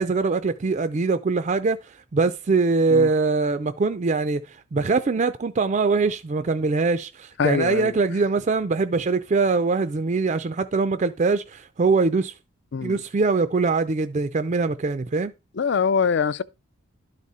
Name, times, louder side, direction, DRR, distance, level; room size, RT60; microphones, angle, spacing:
voice 1, 0.0-12.3 12.8-15.3, right 4 dB, 35° right, 0.4 m, -23 dB
voice 2, 7.4-7.9 12.7-13.0 15.6-16.4, left 6 dB, 55° left, 0.4 m, -23 dB
12.0 x 4.1 x 4.8 m
head